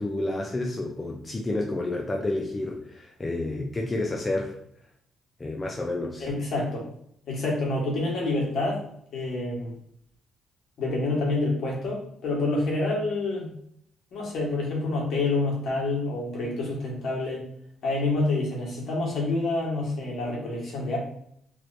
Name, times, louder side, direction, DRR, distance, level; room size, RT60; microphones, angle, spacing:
voice 1, 0.0-4.5 5.4-6.3, left 2 dB, 25° left, 0 dB, 0.5 m, -30 dB
voice 2, 6.2-6.9 7.3-8.8 9.1-9.7 10.8-13.5 14.1-17.4 17.8-21.0, left 2 dB, 65° left, -3 dB, 1.3 m, -27 dB
3.1 x 3.0 x 2.6 m, 0.70 s
cardioid pair, 90°, 0 cm